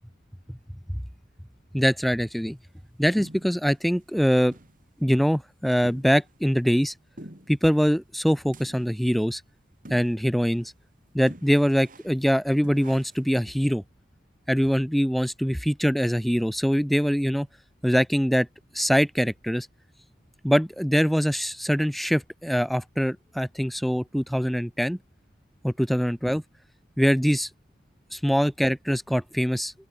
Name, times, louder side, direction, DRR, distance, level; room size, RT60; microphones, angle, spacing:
voice 1, 1.7-2.6 3.0-4.5 5.0-6.9 7.5-9.4 9.9-10.7 11.1-13.8 14.5-17.5 17.8-18.5 18.7-19.7 20.4-25.0 25.6-26.4 27.0-27.5 28.1-29.7, equal, ahead, 0.8 m, -23 dB
sound 1, 3.2-3.7 4.1-4.2 4.5-4.8 5.1-5.2 5.8-6.4 7.2-7.6 8.5-9.0 9.8-10.3 10.6-10.7 11.3-12.2 12.6-13.3, right 1 dB, 45° right, 4.8 m, -46 dB
open air
head